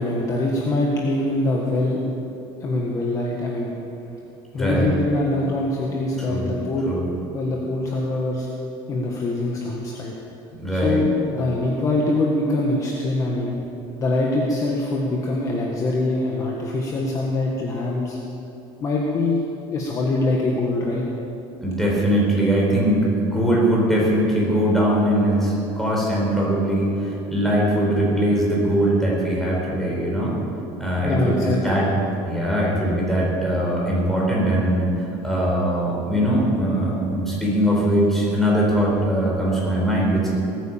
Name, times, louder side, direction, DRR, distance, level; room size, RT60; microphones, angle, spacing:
voice 1, 0.0-2.0 2.6-3.7 4.5-6.9 7.3-8.5 8.9-10.1 10.7-13.5 14.0-18.2 18.8-19.4 19.7-21.0 31.0-31.8, left 2 dB, 30° left, -2 dB, 1.7 m, -23 dB
voice 2, 4.6-4.9 6.2-6.5 6.8-7.0 10.6-11.0 21.6-30.4 30.8-31.9 32.3-40.3, right 1 dB, 5° left, -4 dB, 4.6 m, -21 dB
19.5 x 9.4 x 7.4 m, 2.9 s
cardioid pair, 150°, 11 cm